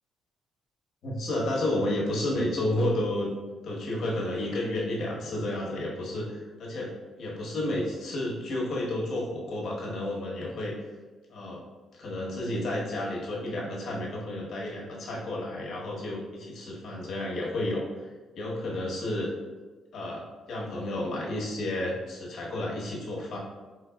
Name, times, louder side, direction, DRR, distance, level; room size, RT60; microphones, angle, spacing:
voice 1, 1.0-3.3 3.6-6.9 7.2-10.8 11.3-11.6 11.9-18.1 18.3-19.3 19.9-23.4, left 1 dB, 65° left, -3 dB, 1.1 m, -31 dB
3.9 x 3.6 x 2.3 m, 1.3 s
cardioid pair, 90°, 0 cm